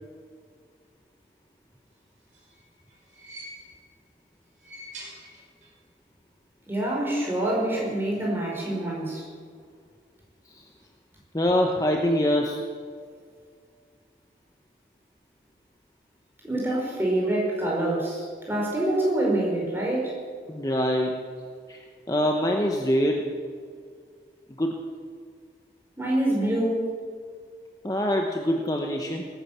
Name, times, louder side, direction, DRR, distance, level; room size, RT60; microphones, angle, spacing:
sound 1, 2.0-4.0 4.4-5.9 6.1-6.2 7.3-7.4, right 1 dB, 45° right, 4.7 m, -46 dB
voice 1, 6.7-9.3 16.4-20.2 26.0-27.0, right 1 dB, 15° right, -3 dB, 4.8 m, -26 dB
voice 2, 11.3-12.6 20.5-21.1 21.7-21.8 22.1-23.2 24.6-24.8 27.8-29.3, equal, 20° left, 2 dB, 1.0 m, -24 dB
19.0 x 10.0 x 7.4 m, 2.1 s
head